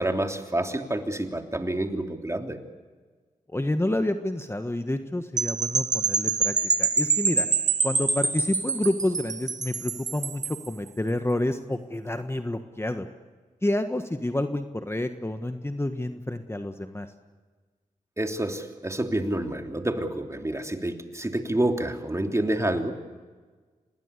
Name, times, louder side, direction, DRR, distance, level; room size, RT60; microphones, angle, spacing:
voice 1, 0.0-2.6 18.2-22.9, right 1 dB, 20° right, 4 dB, 3.1 m, -28 dB
voice 2, 3.5-7.5 7.8-13.1 13.6-17.1, left 1 dB, 15° left, 7 dB, 1.5 m, -29 dB
sound 1, 5.4-10.7, right 4 dB, 55° right, 1.6 m, -26 dB
26.5 x 19.5 x 8.4 m, 1.4 s
cardioid pair, 45°, 15 cm